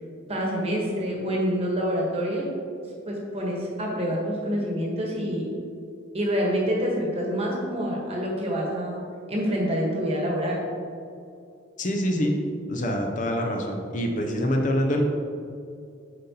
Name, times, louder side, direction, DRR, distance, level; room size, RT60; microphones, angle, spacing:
voice 1, 0.3-2.4 3.1-5.5 6.1-9.0 9.3-10.6, equal, 30° right, -2 dB, 1.2 m, -27 dB
voice 2, 11.8-12.4 12.7-15.0, equal, 40° left, 2 dB, 0.5 m, -25 dB
7.5 x 5.3 x 2.8 m, 2.5 s
head